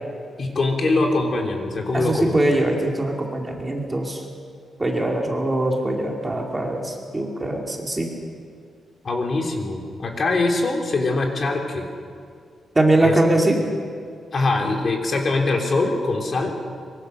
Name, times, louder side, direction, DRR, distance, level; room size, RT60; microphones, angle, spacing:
voice 1, 0.4-2.4 9.0-11.8 13.0-13.1 14.3-16.6, left 2 dB, 35° left, 2 dB, 3.1 m, -23 dB
voice 2, 1.9-4.2 4.8-8.1 12.7-13.6, right 1 dB, 15° right, 0 dB, 2.4 m, -22 dB
24.5 x 23.5 x 6.7 m, 2.1 s
wide cardioid pair, 175°, 0 cm